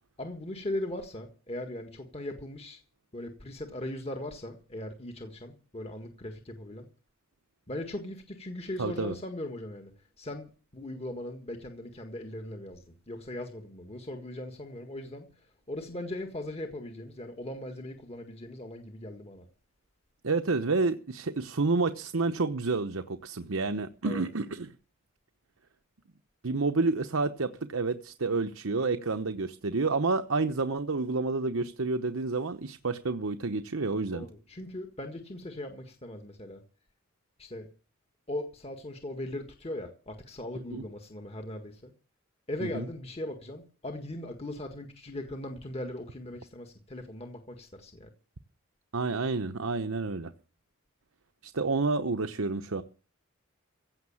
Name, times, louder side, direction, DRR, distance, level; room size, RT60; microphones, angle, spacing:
voice 1, 0.2-2.8 3.1-6.9 7.7-19.5 24.0-24.2 34.1-36.6 37.4-37.7 38.3-41.9 42.5-48.1, left 1 dB, 30° left, 1.7 m, -39 dB
voice 2, 8.8-9.1 20.2-24.7 26.4-34.3 40.7-40.8 42.6-42.9 48.9-50.3 51.4-52.8, right 3 dB, 80° right, 0.9 m, -29 dB
16.0 x 6.6 x 8.6 m
head